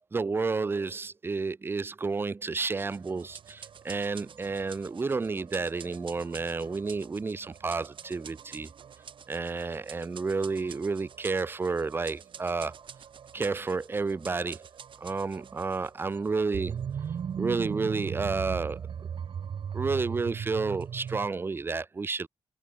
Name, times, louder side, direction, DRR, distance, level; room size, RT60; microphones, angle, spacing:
voice 1, 0.1-8.7 9.3-12.8 13.3-14.7 15.0-16.8 17.4-19.1 19.7-22.3, right 4 dB, 20° right, 0.7 m, -31 dB
sound 1, 2.7-21.3, right 7 dB, 50° right, 4.3 m, -40 dB
wide cardioid pair, 175°, 11 cm